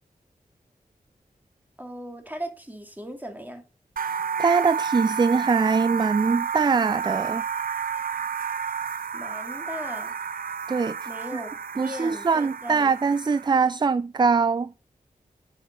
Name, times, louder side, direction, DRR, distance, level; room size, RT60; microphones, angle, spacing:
voice 1, 1.8-3.6 9.1-10.1 11.1-11.5 11.8-12.9, equal, 10° right, 2.4 m, -37 dB
voice 2, 4.0-7.4 10.7-11.0 11.3-11.4 11.8-14.7, right 5 dB, 30° right, 0.4 m, -23 dB
sound 1, 4.0-13.7, right 7 dB, 75° right, 0.6 m, -31 dB
7.9 x 6.8 x 4.1 m
wide cardioid pair, 65°, 15 cm